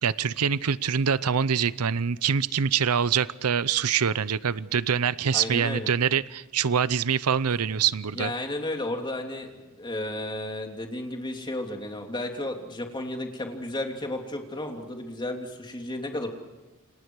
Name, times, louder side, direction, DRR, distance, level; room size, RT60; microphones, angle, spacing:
voice 1, 0.0-8.3, right 7 dB, 80° right, 17 dB, 0.7 m, -25 dB
voice 2, 5.3-5.9 8.1-16.3, left 1 dB, 20° left, 3 dB, 3.1 m, -33 dB
29.0 x 26.0 x 4.8 m, 1.1 s
head